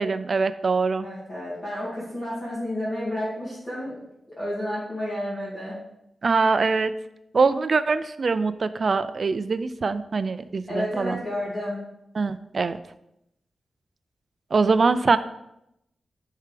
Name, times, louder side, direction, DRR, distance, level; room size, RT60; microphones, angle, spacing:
voice 1, 0.0-1.1 6.2-6.9 7.3-11.2 12.2-12.8 14.5-15.2, right 4 dB, 40° right, 13 dB, 0.4 m, -23 dB
voice 2, 1.0-3.9 4.4-5.8 10.7-11.8, left 1 dB, 20° left, -9 dB, 2.4 m, -31 dB
9.9 x 4.6 x 5.1 m, 0.83 s
wide cardioid pair, 165°, 0 cm